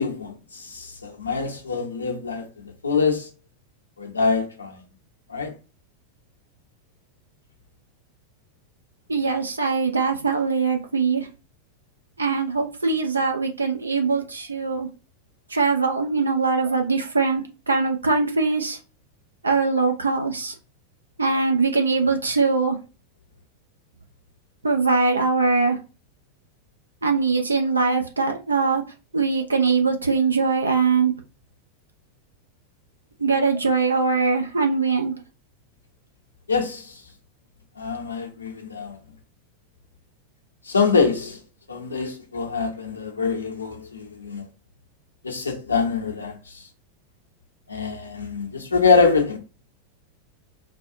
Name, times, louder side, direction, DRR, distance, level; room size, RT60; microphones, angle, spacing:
voice 1, 0.0-2.5 2.8-3.3 4.0-4.8 5.3-5.5 36.5-37.0 37.8-39.0 40.6-41.4 41.7-44.4 45.2-46.7 47.7-49.4, left 4 dB, 75° left, 1.0 m, -24 dB
voice 2, 9.1-11.3 12.2-14.9 15.5-18.8 19.4-20.5 21.2-22.8 24.6-25.8 27.0-28.8 29.1-31.1 33.2-35.1, right 4 dB, 75° right, 0.7 m, -22 dB
4.4 x 2.3 x 2.7 m
figure-of-eight pair, 90°, 0 cm